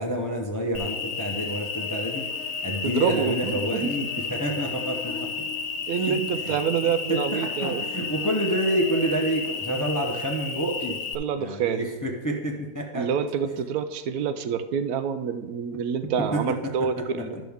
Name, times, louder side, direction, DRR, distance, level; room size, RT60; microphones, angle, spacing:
voice 1, 0.0-2.3 2.6-5.4 6.0-6.6 6.8-11.0 11.4-13.1 13.6-13.7 15.7-15.8 16.2-17.4, right 1 dB, 20° left, 1 dB, 0.5 m, -29 dB
Cricket, 0.7-11.1, left 5 dB, 65° left, 1.0 m, -32 dB
voice 2, 2.8-3.9 5.9-7.8 11.1-11.8 12.9-17.3, right 7 dB, 80° right, 10 dB, 1.1 m, -27 dB
12.0 x 6.2 x 3.5 m, 1.2 s
omnidirectional pair, 1.5 m